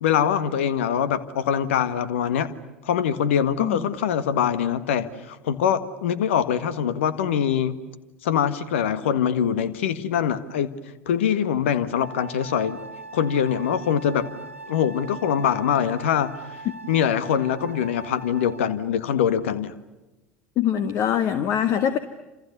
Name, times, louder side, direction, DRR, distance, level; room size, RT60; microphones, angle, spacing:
voice 1, 0.0-2.5 2.8-7.8 8.2-10.7 11.0-12.8 13.1-14.2 14.7-16.3 16.9-19.7, left 8 dB, 65° left, 14 dB, 1.7 m, -23 dB
Wind instrument woodwind instrument, 12.0-18.8, right 3 dB, 90° right, 1.2 m, -41 dB
voice 2, 20.6-22.0, left 9 dB, 45° left, 11 dB, 1.5 m, -23 dB
29.5 x 28.0 x 6.9 m, 1.1 s
figure-of-eight pair, 70°, 7 cm